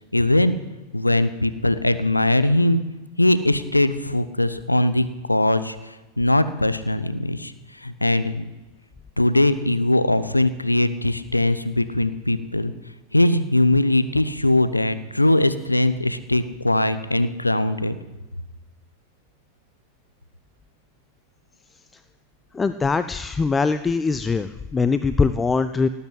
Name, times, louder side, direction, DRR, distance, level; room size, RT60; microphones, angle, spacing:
voice 1, 0.1-0.6 0.9-2.8 3.2-7.5 7.8-8.5 9.2-12.7 13.1-18.0, left 1 dB, 85° left, 13 dB, 0.8 m, -20 dB
voice 2, 22.5-25.9, left 4 dB, 15° left, 12 dB, 0.5 m, -22 dB
18.5 x 8.4 x 7.9 m, 1.1 s
figure-of-eight pair, 90°, 0 cm